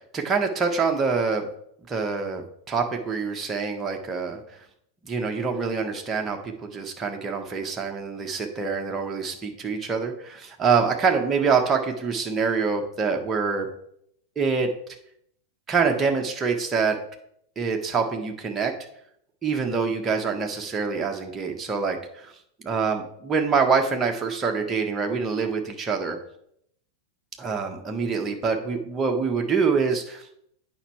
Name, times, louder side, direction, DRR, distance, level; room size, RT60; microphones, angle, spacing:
voice 1, 0.0-1.5 1.9-4.4 5.0-13.7 14.3-14.7 15.7-17.0 17.6-18.8 19.4-22.3 22.6-26.2 27.4-30.5, right 5 dB, 20° right, 2 dB, 1.4 m, -25 dB
8.9 x 5.6 x 4.8 m, 0.71 s
figure-of-eight pair, 90°, 0 cm